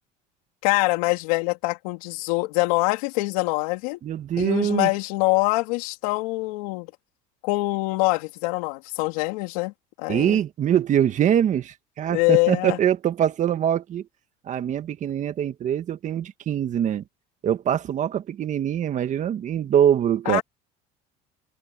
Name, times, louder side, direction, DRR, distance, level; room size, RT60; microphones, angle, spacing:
voice 1, 0.6-4.0 4.4-6.9 7.4-9.7 10.0-10.4 12.1-12.8 20.3-20.4, left 24 dB, 85° left, 3.7 m, -24 dB
voice 2, 4.0-4.9 10.1-14.1 14.5-17.0 17.4-20.4, right 10 dB, 45° right, 1.8 m, -23 dB
supercardioid pair, 110°, 18 cm